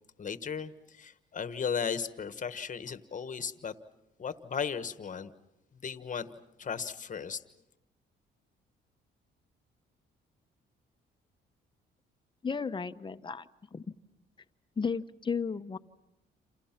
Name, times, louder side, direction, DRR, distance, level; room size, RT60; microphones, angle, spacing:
voice 1, 0.2-3.7 4.2-5.3 5.8-6.3 6.6-7.4, left 6 dB, 40° left, 12 dB, 1.3 m, -36 dB
voice 2, 12.4-13.4 13.7-13.8 14.8-15.8, left 5 dB, 25° left, 10 dB, 0.9 m, -33 dB
28.0 x 28.0 x 5.9 m, 0.91 s
cardioid pair, 90°, 20 cm